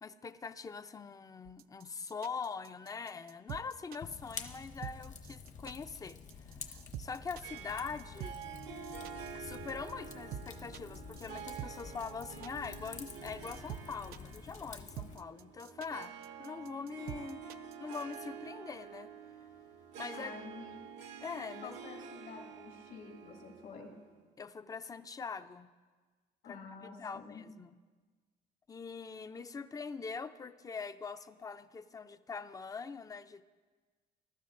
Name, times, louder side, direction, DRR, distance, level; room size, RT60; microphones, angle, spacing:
voice 1, 0.0-6.2 6.5-8.4 9.3-17.4 17.8-19.1 20.0-20.3 21.2-21.8 24.4-25.7 26.4-27.8 28.7-33.4, left 5 dB, 20° left, 12 dB, 0.5 m, -43 dB
sound 1, 1.4-18.2, right 11 dB, 65° right, 0.4 m, -46 dB
Fire, 4.0-15.2, left 5 dB, 45° left, 1.0 m, -49 dB
Harp, 7.4-24.2, right 7 dB, 85° right, 1.1 m, -49 dB
voice 2, 20.1-20.8 21.6-23.9 26.4-27.4, left 5 dB, 75° left, 1 dB, 3.0 m, -49 dB
20.5 x 12.0 x 2.5 m, 1.4 s
cardioid pair, 110°, 17 cm